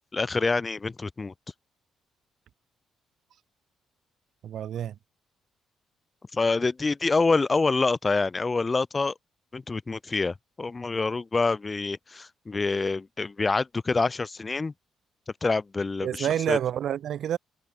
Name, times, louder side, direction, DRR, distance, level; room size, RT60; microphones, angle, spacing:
voice 1, 0.1-1.3 6.3-9.1 9.5-14.7 15.4-16.6, left 3 dB, 25° left, 1.9 m, -26 dB
voice 2, 4.4-4.9 16.0-17.4, right 10 dB, 70° right, 1.0 m, -28 dB
cardioid pair, 90°, 0 cm